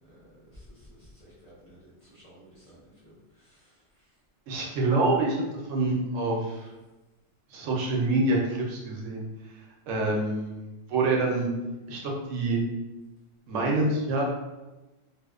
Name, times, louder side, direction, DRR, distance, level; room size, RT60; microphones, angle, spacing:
voice 1, 0.0-3.8, equal, 30° left, -10 dB, 0.7 m, -54 dB
voice 2, 4.5-5.4 5.7-6.7 7.5-9.2 9.9-11.5 11.9-12.6 13.5-14.3, right 2 dB, 80° right, -2 dB, 0.9 m, -26 dB
2.7 x 2.0 x 2.3 m, 1.1 s
omnidirectional pair, 1.3 m